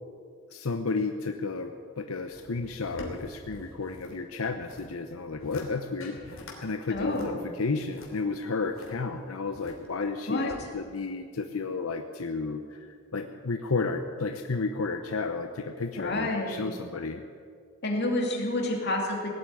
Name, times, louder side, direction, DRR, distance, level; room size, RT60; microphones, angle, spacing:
voice 1, 0.5-17.2, left 4 dB, 90° left, 6 dB, 0.8 m, -32 dB
sound 1, 2.3-4.2 4.4-4.9 5.3-5.7 6.0-6.6 6.9-8.9 9.5-10.1 10.5-10.6, left 1 dB, 70° left, 3.1 m, -45 dB
voice 2, 6.9-7.3 10.3-10.5 16.0-16.7 17.8-19.3, left 2 dB, 50° left, 0 dB, 2.8 m, -29 dB
17.5 x 8.5 x 9.4 m, 2.1 s
head